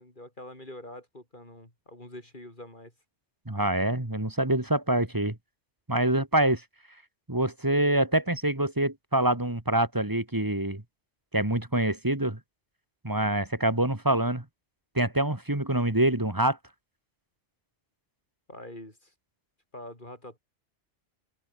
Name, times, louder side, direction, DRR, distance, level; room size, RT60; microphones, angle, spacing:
voice 1, 0.0-2.9 18.5-19.1 19.7-20.4, left 1 dB, 40° left, 6.6 m, -45 dB
voice 2, 3.5-5.4 5.9-6.6 7.3-10.8 11.3-12.4 13.0-14.4 14.9-16.6, right 1 dB, 15° right, 2.2 m, -25 dB
omnidirectional pair, 1.2 m